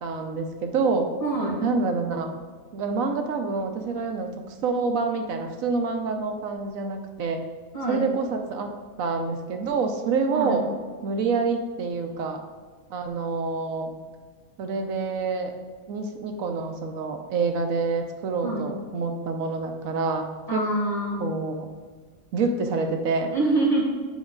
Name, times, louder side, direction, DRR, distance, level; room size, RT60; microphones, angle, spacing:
voice 1, 0.0-1.1 1.6-2.3 2.7-4.3 4.6-7.4 7.9-8.7 9.0-10.6 11.0-12.4 12.9-13.9 14.6-15.5 15.9-20.3 20.5-20.7 21.2-21.7 22.3-23.3, right 4 dB, 80° right, 5 dB, 1.2 m, -27 dB
voice 2, 1.2-1.6 7.7-8.1 10.3-10.6 18.4-18.7 20.5-21.2 23.3-23.8, right 2 dB, 25° left, -5 dB, 2.0 m, -25 dB
7.0 x 5.2 x 3.7 m, 1.5 s
omnidirectional pair, 1.4 m